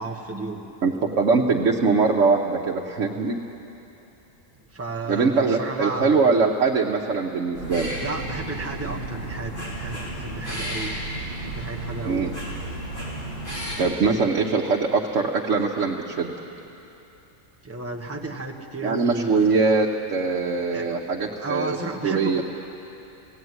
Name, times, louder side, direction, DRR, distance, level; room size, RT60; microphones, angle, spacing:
voice 1, 0.0-0.6 4.7-6.4 8.0-10.9 11.4-12.3 17.6-19.5 20.7-21.0 21.4-22.4, right 3 dB, 10° right, 1 dB, 1.2 m, -32 dB
voice 2, 0.8-3.4 5.1-7.9 12.0-12.3 13.5-16.3 18.8-21.8 22.0-22.4, right 4 dB, 70° right, -1 dB, 1.4 m, -22 dB
sound 1, 7.5-13.8, right 1 dB, 40° left, 4.6 m, -32 dB
17.0 x 17.0 x 9.5 m, 2.9 s
omnidirectional pair, 1.3 m